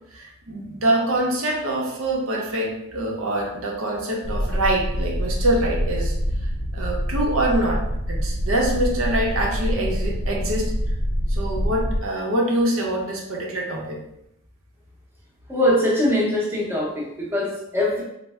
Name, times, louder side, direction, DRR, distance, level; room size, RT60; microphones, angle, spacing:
voice 1, 0.1-6.1 6.7-7.8 8.1-10.7 11.3-14.0, right 1 dB, 80° right, -2 dB, 0.7 m, -24 dB
sound 1, 4.2-12.0, equal, 50° left, 0.5 m, -25 dB
voice 2, 15.5-18.0, left 1 dB, 10° right, -6 dB, 0.7 m, -22 dB
3.1 x 2.1 x 3.5 m, 0.80 s
head